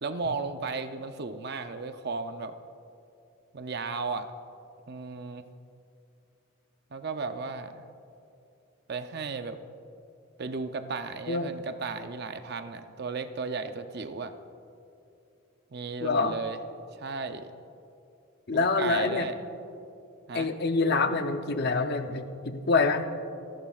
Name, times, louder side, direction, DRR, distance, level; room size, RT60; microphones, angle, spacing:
voice 1, 0.0-2.5 3.5-4.3 4.9-5.5 6.9-7.8 8.9-9.6 10.4-14.3 15.7-16.6 16.9-17.5 18.5-19.4 20.3-20.5, right 4 dB, 50° right, 9 dB, 0.6 m, -35 dB
voice 2, 16.0-16.4 18.5-19.3 20.3-23.0, left 3 dB, 50° left, 7 dB, 0.7 m, -26 dB
29.0 x 11.5 x 2.4 m, 2.7 s
head